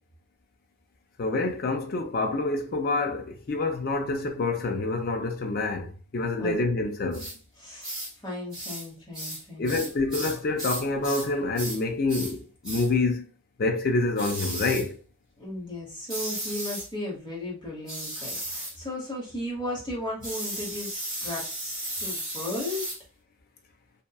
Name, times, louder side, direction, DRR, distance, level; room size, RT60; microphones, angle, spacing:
voice 1, 1.2-7.4 9.6-13.3 13.6-15.0, left 3 dB, 45° left, 0.4 m, -27 dB
sound 1, 7.1-7.4 7.8-8.1 8.5-8.9 9.1-11.3 11.5-11.8 12.1-12.3 12.6-12.9 14.2-14.9 16.1-16.9 17.9-18.8 20.2-23.0, right 1 dB, 5° right, 1.1 m, -35 dB
voice 2, 7.6-7.9 8.2-9.8 15.4-20.9 21.2-22.9, left 1 dB, 20° left, 0.9 m, -35 dB
2.8 x 2.2 x 2.2 m
head